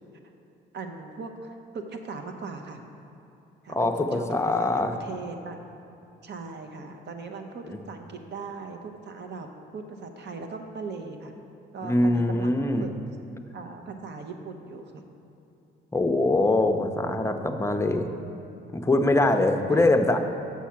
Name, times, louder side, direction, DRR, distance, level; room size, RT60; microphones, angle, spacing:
voice 1, 0.7-2.8 3.6-4.7 5.0-5.6 6.2-9.5 9.7-11.3 11.7-12.9 13.5-15.0 19.7-19.9, right 4 dB, 60° right, 5 dB, 0.9 m, -39 dB
voice 2, 3.7-5.0 11.8-12.9 15.9-18.1 18.7-20.2, left 2 dB, 15° left, 5 dB, 0.6 m, -23 dB
7.2 x 6.1 x 5.8 m, 2.8 s
cardioid pair, 90°, 20 cm